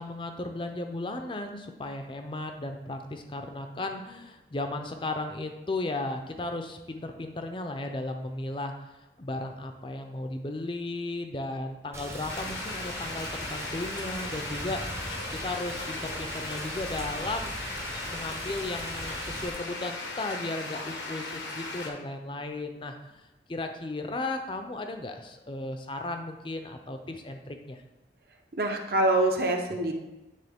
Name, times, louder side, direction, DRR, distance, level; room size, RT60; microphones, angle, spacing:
voice 1, 0.0-8.7 9.2-15.1 15.4-17.5 18.1-23.2 23.5-27.8, left 2 dB, 30° left, 5 dB, 0.5 m, -35 dB
Rain, 11.9-19.5, right 1 dB, 15° right, 0.6 m, -40 dB
sound 1, 12.3-21.9, left 3 dB, 80° left, 1.0 m, -37 dB
voice 2, 28.6-29.9, right 1 dB, 55° right, 3 dB, 0.8 m, -25 dB
9.1 x 3.6 x 3.5 m, 1.0 s
head